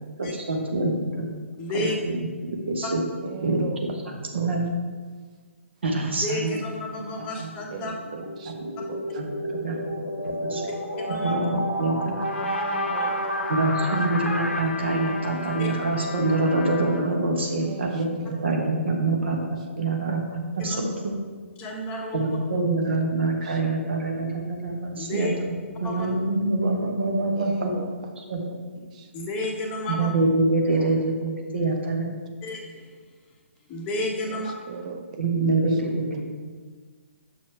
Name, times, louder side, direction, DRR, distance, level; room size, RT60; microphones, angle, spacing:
voice 1, 0.2-1.3 1.7-3.0 3.4-3.7 4.3-4.7 5.8-6.6 7.0-7.5 8.5-8.6 9.2-9.3 9.5-10.6 11.2-12.2 13.5-21.2 22.1-27.7 28.3-28.4 30.0-32.2 35.2-36.2, right 2 dB, 55° right, 1 dB, 1.1 m, -25 dB
voice 2, 1.6-2.0 6.2-7.9 10.5-10.7 11.1-11.4 15.4-15.7 20.6-20.8 21.6-22.2 25.0-25.3 25.8-26.1 29.1-30.1 32.4-32.9 33.7-34.5, left 1 dB, 15° left, 0 dB, 0.8 m, -31 dB
voice 3, 3.2-4.1 4.3-4.5 7.7-8.5 8.9-9.1 12.4-13.5 17.5-18.6 22.5-23.6 27.3-28.6 28.9-29.1 30.7-31.1 34.3-35.2 35.5-35.8, right 5 dB, 30° right, 4 dB, 0.6 m, -39 dB
sound 1, 8.0-14.6, equal, 85° left, 0.6 m, -30 dB
Trumpet, 12.2-17.1, left 4 dB, 50° left, 0.8 m, -35 dB
6.6 x 5.4 x 3.3 m, 1.5 s
figure-of-eight pair, 130°, 7 cm